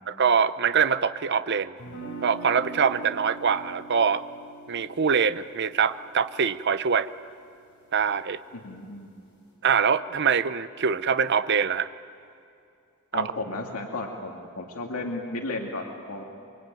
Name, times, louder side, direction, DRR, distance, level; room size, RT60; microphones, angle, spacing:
voice 1, 0.1-1.7 2.2-4.2 4.7-7.1 7.9-8.4 9.6-11.9 13.1-13.3, right 6 dB, 50° right, 13 dB, 0.7 m, -24 dB
sound 1, 1.8-7.8, right 3 dB, 60° left, 6.6 m, -43 dB
voice 2, 8.5-9.1 13.1-16.2, left 2 dB, 90° left, 1 dB, 2.4 m, -34 dB
25.5 x 24.0 x 9.2 m, 2.6 s
head